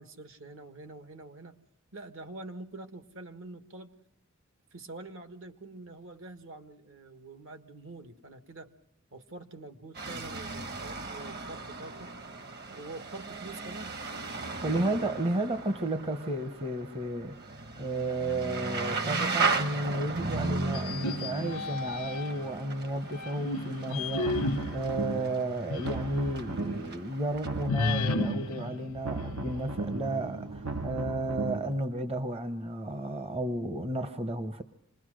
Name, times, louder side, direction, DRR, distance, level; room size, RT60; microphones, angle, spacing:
voice 1, 0.0-1.6 1.9-3.9 4.7-8.7 9.1-12.1 12.7-14.0, right 2 dB, 65° right, 1.5 m, -46 dB
sound 1, 9.9-27.7, right 4 dB, 50° right, 1.4 m, -36 dB
voice 2, 14.6-17.4 17.8-34.6, right 1 dB, 30° right, 0.8 m, -33 dB
sound 2, 20.7-22.5 23.1-26.1 26.5-26.6 27.7-29.7, left 3 dB, 85° left, 0.8 m, -33 dB
sound 3, 24.1-25.4 25.7-27.0 27.3-28.6 28.9-31.7, right 3 dB, 85° right, 1.3 m, -36 dB
26.5 x 20.5 x 6.3 m
head